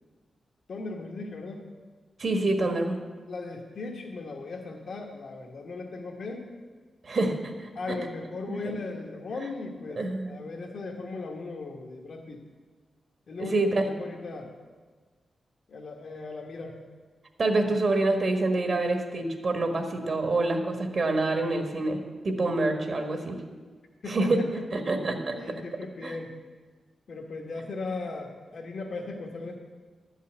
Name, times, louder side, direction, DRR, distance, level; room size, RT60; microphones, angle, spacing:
voice 1, 0.7-1.7 3.3-6.5 7.7-12.4 13.3-14.5 15.7-16.8 24.0-24.3 25.3-26.3 27.1-29.5, left 3 dB, 65° left, 1 dB, 1.3 m, -37 dB
voice 2, 2.2-3.0 7.0-7.7 8.5-8.8 10.0-10.3 13.4-13.8 17.4-23.4 24.1-25.4 26.0-26.1, right 2 dB, 50° right, 5 dB, 1.4 m, -27 dB
11.5 x 5.6 x 8.6 m, 1.4 s
wide cardioid pair, 115°, 0 cm